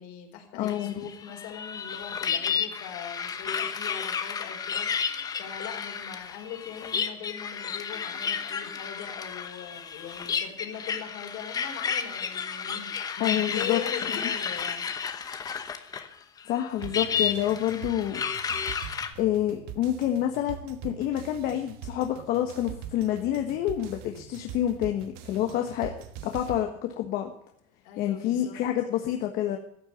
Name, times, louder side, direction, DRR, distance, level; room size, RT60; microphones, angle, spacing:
voice 1, 0.0-14.9 27.8-28.6, left 9 dB, 65° left, 2 dB, 4.5 m, -41 dB
voice 2, 0.5-0.9 13.2-13.8 14.2-14.3 16.5-18.2 19.2-25.9 26.2-27.3 28.0-29.6, left 11 dB, 50° left, 4 dB, 1.4 m, -28 dB
sound 1, 0.7-16.1 16.4-19.1, left 6 dB, 20° left, 1.1 m, -32 dB
sound 2, 16.8-26.6, right 9 dB, 60° right, 1.3 m, -43 dB
14.5 x 8.2 x 9.2 m, 0.70 s
cardioid pair, 170°, 19 cm